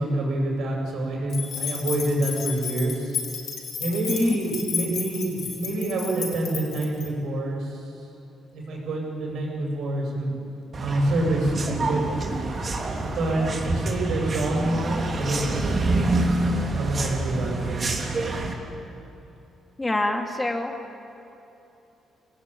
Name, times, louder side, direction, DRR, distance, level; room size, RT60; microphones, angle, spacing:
voice 1, 0.0-3.2 3.8-7.9 8.5-10.3 10.8-12.1 13.2-16.3 16.6-17.9, right 1 dB, 70° right, 0 dB, 7.6 m, -27 dB
sound 1, 1.3-7.1, left 7 dB, 60° left, 5.1 m, -33 dB
sound 2, 10.7-18.5, right 2 dB, 40° right, 3.3 m, -27 dB
voice 2, 19.8-20.7, left 2 dB, 15° left, 3 dB, 2.4 m, -25 dB
27.0 x 18.5 x 9.2 m, 2.9 s
cardioid pair, 120°, 0 cm